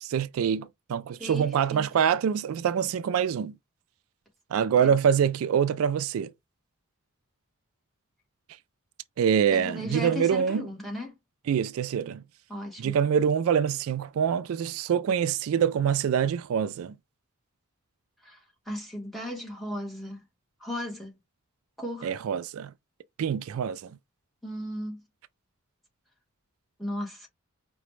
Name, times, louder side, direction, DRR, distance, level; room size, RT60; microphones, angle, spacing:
voice 1, 0.0-3.5 4.5-6.3 9.2-10.6 11.5-12.2 12.8-16.9 22.0-22.7 23.2-23.9, right 8 dB, 75° right, 0.3 m, -25 dB
voice 2, 1.2-1.9 4.8-4.9 9.5-11.1 12.5-12.9 18.2-20.2 20.6-21.1 21.8-22.1 24.4-25.0 26.8-27.3, left 1 dB, ahead, 1.1 m, -36 dB
4.9 x 2.2 x 3.1 m
head